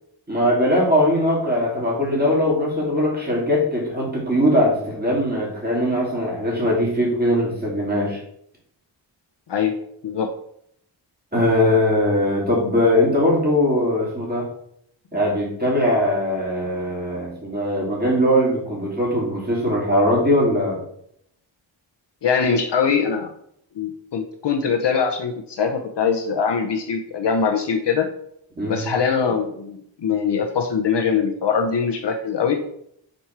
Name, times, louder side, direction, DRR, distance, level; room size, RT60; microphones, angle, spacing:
voice 1, 0.3-8.2 11.3-14.4 15.1-20.8 28.6-28.8, left 1 dB, 20° right, -4 dB, 2.7 m, -20 dB
voice 2, 22.2-23.3 23.8-28.1 28.7-32.6, left 6 dB, 60° left, 4 dB, 0.7 m, -22 dB
5.3 x 4.2 x 4.5 m, 0.70 s
wide cardioid pair, 115°, 47 cm